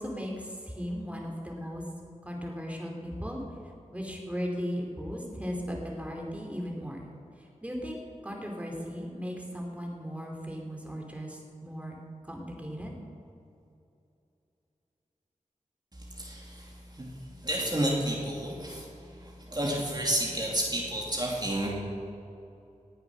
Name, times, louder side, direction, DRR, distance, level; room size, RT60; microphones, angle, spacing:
voice 1, 0.0-1.8 2.2-3.4 3.9-7.1 7.6-8.0 8.2-12.0 12.2-12.9, equal, 10° right, 0 dB, 2.8 m, -37 dB
voice 2, 16.2-16.6 17.0-17.1 17.4-18.8 19.2-21.7, right 1 dB, 30° right, -3 dB, 2.5 m, -30 dB
18.5 x 8.0 x 6.2 m, 2.7 s
wide cardioid pair, 50°, 13 cm